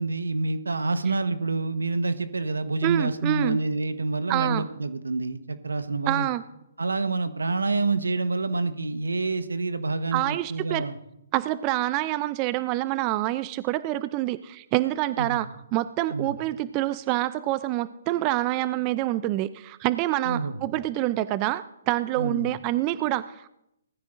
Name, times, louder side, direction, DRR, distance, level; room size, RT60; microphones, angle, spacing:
voice 1, 0.0-6.3 6.8-11.0 15.2-15.4 16.1-16.3 20.2-20.6 22.2-22.5, right 3 dB, 90° right, 11 dB, 1.1 m, -27 dB
voice 2, 2.8-3.6 4.3-4.7 6.1-6.4 10.1-10.8 11.3-15.5 15.7-23.5, right 16 dB, 30° right, 15 dB, 0.4 m, -26 dB
19.5 x 14.0 x 2.6 m, 0.82 s
hypercardioid pair, 140°, 0 cm